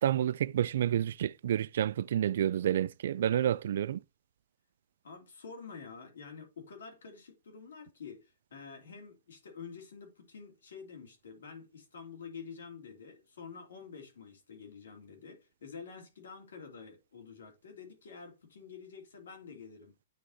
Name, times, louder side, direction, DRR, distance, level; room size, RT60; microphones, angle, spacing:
voice 1, 0.0-4.0, right 10 dB, 65° right, 0.3 m, -29 dB
voice 2, 5.0-19.9, left 5 dB, 90° left, 2.9 m, -48 dB
9.3 x 3.4 x 4.0 m
hypercardioid pair, 155°, 0 cm